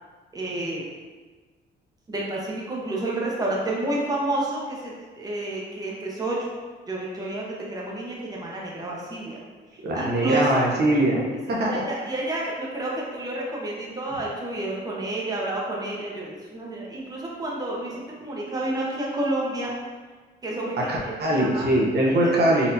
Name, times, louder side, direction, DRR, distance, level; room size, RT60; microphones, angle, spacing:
voice 1, 0.3-0.9 2.1-6.4 6.9-9.4 9.7-10.7 11.7-19.7 20.4-21.1 21.4-21.7 22.0-22.4, right 2 dB, 20° right, -3 dB, 0.8 m, -30 dB
voice 2, 9.8-11.2 11.5-11.7 20.9-22.7, right 1 dB, 55° right, -3 dB, 0.7 m, -21 dB
4.1 x 2.7 x 2.6 m, 1.4 s
cardioid pair, 90°, 20 cm